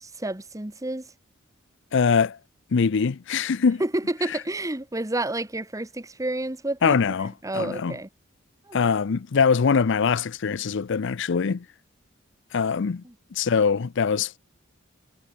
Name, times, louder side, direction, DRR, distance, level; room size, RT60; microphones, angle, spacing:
voice 1, 0.0-1.1 3.8-8.1 8.7-8.9 13.0-13.1, right 1 dB, 15° right, 1.3 m, -30 dB
voice 2, 1.9-2.4 2.7-3.8 6.8-7.9 8.7-11.6 12.5-13.0 13.3-14.3, left 5 dB, 65° left, 0.5 m, -23 dB
head